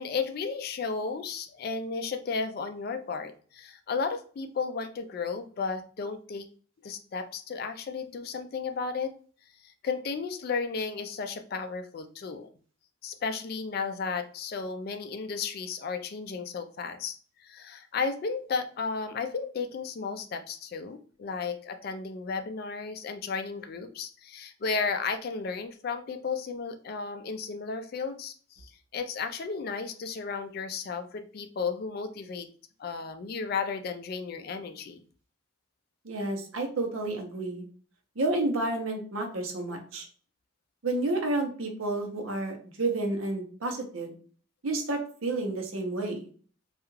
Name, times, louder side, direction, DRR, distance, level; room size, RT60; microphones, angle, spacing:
voice 1, 0.0-6.5 6.8-9.1 9.6-12.5 13.0-32.5 32.8-35.0, left 5 dB, 45° left, 8 dB, 0.3 m, -34 dB
voice 2, 36.0-37.7 38.2-40.1 40.8-44.1 44.6-46.2, right 2 dB, 80° right, 3 dB, 0.7 m, -30 dB
2.3 x 2.2 x 3.1 m, 0.43 s
head